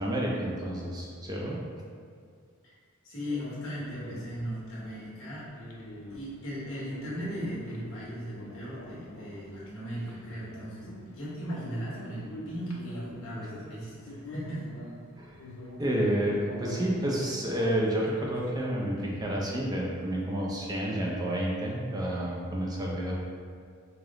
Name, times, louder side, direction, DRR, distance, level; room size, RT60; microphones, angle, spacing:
voice 1, 0.0-1.6 15.2-15.4 15.8-23.1, right 1 dB, 20° right, -3 dB, 0.4 m, -30 dB
voice 2, 3.0-5.5 6.1-14.7, equal, 70° left, -8 dB, 1.3 m, -37 dB
sound 1, 3.2-18.5, left 1 dB, 85° left, 0.5 m, -45 dB
4.9 x 2.0 x 3.6 m, 2.1 s
head